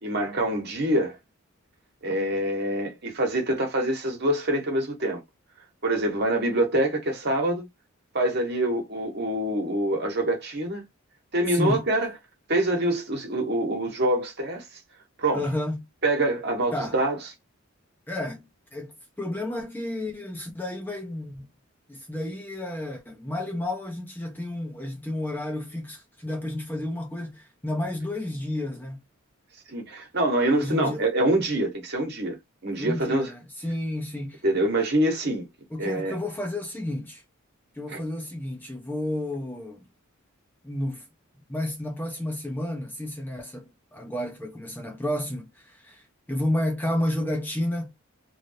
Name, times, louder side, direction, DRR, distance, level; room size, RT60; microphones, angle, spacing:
voice 1, 0.0-1.2 2.0-5.2 5.8-7.6 8.1-10.8 11.3-12.1 12.5-14.6 15.2-15.4 16.0-17.2 29.7-32.4 32.6-33.3 34.4-35.5 35.8-36.2 37.9-38.0, right 1 dB, 50° right, 1.3 m, -25 dB
voice 2, 11.5-11.8 15.3-15.8 16.7-17.0 18.1-21.5 21.9-29.0 30.5-31.1 32.8-34.4 35.7-37.2 37.8-39.9 40.6-41.1 41.5-47.9, left 1 dB, 10° left, 0.7 m, -31 dB
3.2 x 2.6 x 2.7 m
head